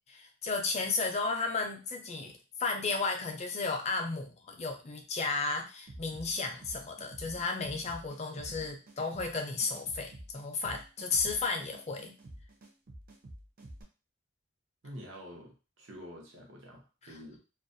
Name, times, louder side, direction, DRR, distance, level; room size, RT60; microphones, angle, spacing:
voice 1, 0.2-2.3 2.6-12.1, left 4 dB, 35° left, 3 dB, 0.4 m, -33 dB
sound 1, 5.9-13.8, right 1 dB, 50° right, 0.5 m, -49 dB
voice 2, 14.8-17.4, equal, 80° right, 0 dB, 0.8 m, -48 dB
2.3 x 2.1 x 2.6 m, 0.32 s
head